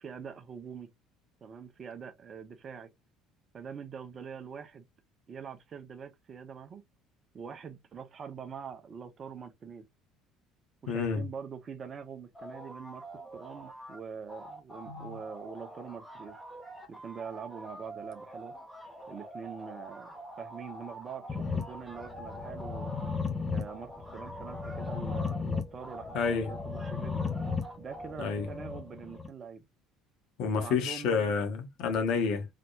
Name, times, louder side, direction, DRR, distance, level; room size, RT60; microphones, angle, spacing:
voice 1, 0.0-0.9 1.4-2.9 3.5-4.9 5.3-6.8 7.3-9.9 10.8-13.0 13.3-16.4 16.9-18.5 19.1-22.9 23.5-27.2 27.8-29.6 30.6-31.3, right 6 dB, 35° right, 1.0 m, -44 dB
voice 2, 10.9-11.2 14.9-15.2 26.1-26.5 28.2-28.5 30.4-32.5, left 5 dB, 60° left, 1.2 m, -29 dB
sound 1, 12.3-14.0 14.3-23.2 23.6-25.4 25.8-28.1, right 1 dB, ahead, 1.4 m, -46 dB
sound 2, 21.3-29.3, left 4 dB, 25° left, 1.6 m, -36 dB
4.2 x 3.3 x 2.5 m
figure-of-eight pair, 60°, 0 cm